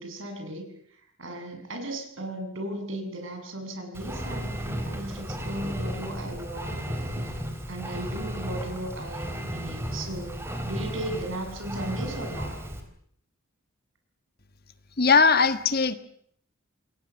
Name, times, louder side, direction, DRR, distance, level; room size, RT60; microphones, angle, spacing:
voice 1, 0.0-12.6, right 1 dB, 65° right, 4 dB, 7.4 m, -36 dB
Engine, 3.9-12.8, equal, 10° right, 3.8 m, -34 dB
voice 2, 15.0-15.9, left 5 dB, 45° left, 11 dB, 1.4 m, -19 dB
28.5 x 21.0 x 7.3 m, 0.67 s
head